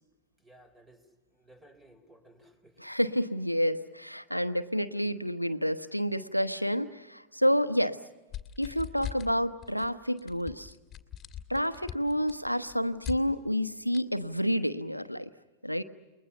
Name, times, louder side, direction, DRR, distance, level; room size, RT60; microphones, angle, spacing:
voice 1, 0.4-1.0 1.3-2.8, right 1 dB, 10° right, 10 dB, 3.8 m, -57 dB
voice 2, 2.8-8.0 8.6-10.7 11.5-15.3 15.6-15.8, equal, 90° left, 12 dB, 1.0 m, -29 dB
sound 1, 8.3-9.3 9.6-9.9 10.2-13.2 13.9-14.0, left 11 dB, 25° left, 2.3 m, -40 dB
29.5 x 22.0 x 7.0 m, 1.1 s
figure-of-eight pair, 90°, 0 cm